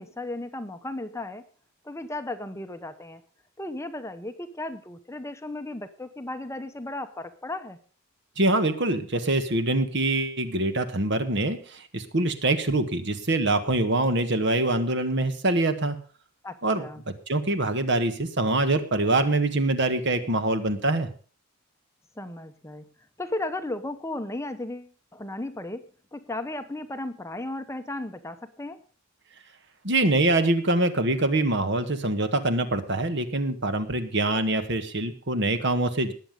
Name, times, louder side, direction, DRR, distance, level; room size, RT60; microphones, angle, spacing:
voice 1, 0.0-1.5 1.8-3.2 3.6-7.8 16.4-17.0 22.2-22.8 23.2-25.8 26.1-28.8, left 2 dB, 15° left, 9 dB, 0.9 m, -35 dB
voice 2, 8.4-16.0 16.6-16.8 17.3-21.1 29.8-36.1, right 2 dB, 50° right, 9 dB, 1.6 m, -24 dB
19.5 x 7.8 x 5.2 m, 0.40 s
head